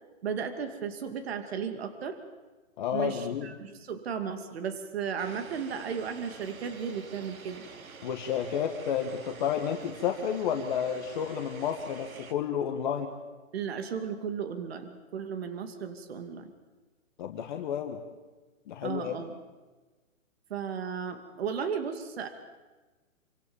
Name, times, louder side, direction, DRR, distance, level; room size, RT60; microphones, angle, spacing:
voice 1, 0.2-2.2 2.9-7.6 13.5-16.5 18.8-19.4 20.5-22.3, right 7 dB, 45° right, 8 dB, 2.6 m, -35 dB
voice 2, 2.8-3.5 8.0-13.1 17.2-18.0 18.7-19.1, left 8 dB, 35° left, 3 dB, 1.8 m, -31 dB
sound 1, 5.2-12.3, right 5 dB, 85° right, 3.0 m, -48 dB
28.0 x 25.5 x 7.2 m, 1.2 s
hypercardioid pair, 165°, 41 cm